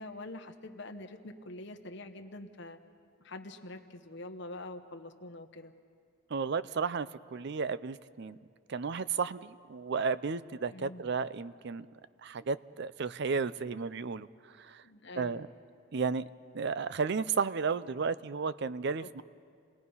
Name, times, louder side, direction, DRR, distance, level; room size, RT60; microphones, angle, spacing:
voice 1, 0.0-2.8 3.2-5.7 10.7-11.1 14.8-15.4 19.0-19.2, left 2 dB, 60° left, 5 dB, 1.1 m, -45 dB
voice 2, 6.3-8.4 8.7-11.9 12.2-14.3 14.6-14.8 15.2-15.5 15.9-16.2 16.5-19.2, right 5 dB, 55° right, 16 dB, 0.5 m, -33 dB
29.0 x 18.5 x 5.5 m, 2.2 s
head